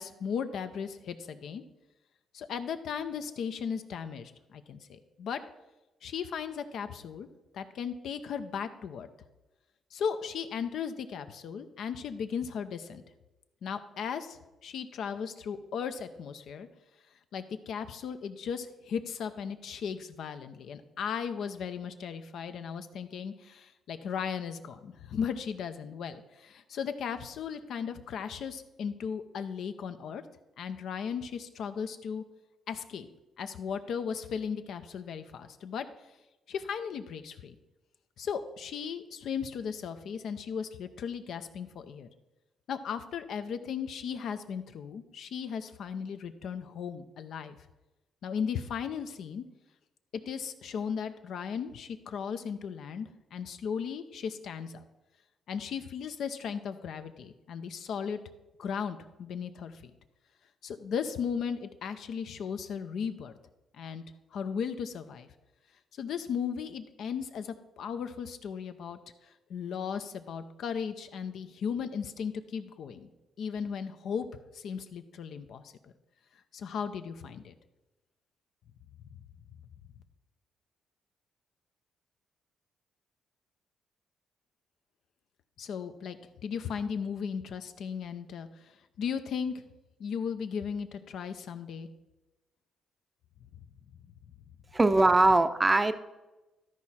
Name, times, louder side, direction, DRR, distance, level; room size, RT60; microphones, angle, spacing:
voice 1, 0.0-1.6 2.3-5.4 6.0-7.3 7.5-9.1 9.9-13.0 13.6-16.7 17.3-30.2 30.6-32.2 32.7-33.1 33.4-35.9 36.5-37.5 38.2-42.1 42.7-47.5 48.2-49.4 50.3-54.8 55.5-58.2 58.6-59.9 60.6-63.3 63.8-64.0 64.3-65.3 66.0-69.0 69.5-73.1 73.4-74.3 74.5-75.9 76.5-77.5 85.6-88.5 89.0-89.5 90.0-91.9, left 7 dB, 70° left, 10 dB, 0.7 m, -36 dB
voice 2, 94.7-95.9, right 2 dB, 20° right, 10 dB, 0.5 m, -21 dB
13.0 x 4.8 x 4.3 m, 1.1 s
cardioid pair, 90°, 0 cm